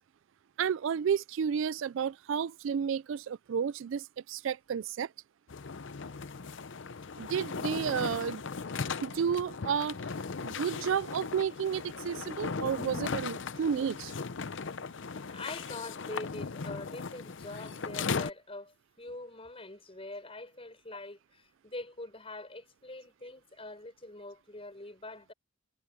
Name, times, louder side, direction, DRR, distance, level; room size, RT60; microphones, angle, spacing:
voice 1, 0.6-5.1 7.2-8.4 9.0-10.0 10.4-14.1, right 7 dB, 65° right, 0.3 m, -31 dB
sound 1, 5.5-18.3, left 5 dB, 60° left, 0.7 m, -37 dB
voice 2, 15.2-25.3, left 2 dB, 30° left, 5.4 m, -44 dB
head